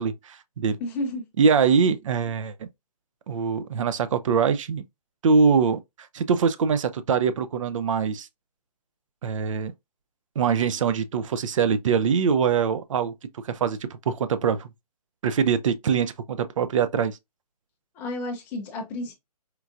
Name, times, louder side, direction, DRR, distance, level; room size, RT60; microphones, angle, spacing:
voice 1, 0.0-0.8 1.4-2.7 3.3-4.8 5.2-5.8 6.1-8.3 9.2-9.7 10.4-13.1 13.4-14.7 15.2-17.2, right 6 dB, 55° right, 0.4 m, -23 dB
voice 2, 0.8-1.2 18.0-19.1, left 1 dB, 10° left, 0.4 m, -31 dB
4.5 x 2.5 x 2.3 m
hypercardioid pair, 155°, 20 cm